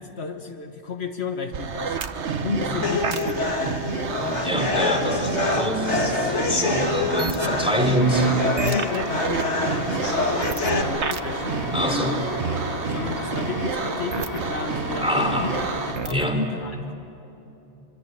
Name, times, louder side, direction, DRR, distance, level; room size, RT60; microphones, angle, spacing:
voice 1, 0.0-2.0 2.4-4.1 7.4-11.6 11.9-12.4 12.9-16.9, left 5 dB, 65° left, 5 dB, 1.5 m, -33 dB
sound 1, 1.5-16.3, right 5 dB, 80° right, 1.3 m, -29 dB
voice 2, 2.6-3.0 4.2-8.3 11.7-12.2 13.2-13.3 15.0-15.5 16.1-16.4, equal, 5° right, 3 dB, 3.4 m, -25 dB
sound 2, 2.8-10.8, left 3 dB, 80° left, 2.3 m, -26 dB
sound 3, 8.0-15.9, left 2 dB, 35° left, 2.4 m, -33 dB
25.5 x 25.0 x 9.1 m, 2.8 s
omnidirectional pair, 1.2 m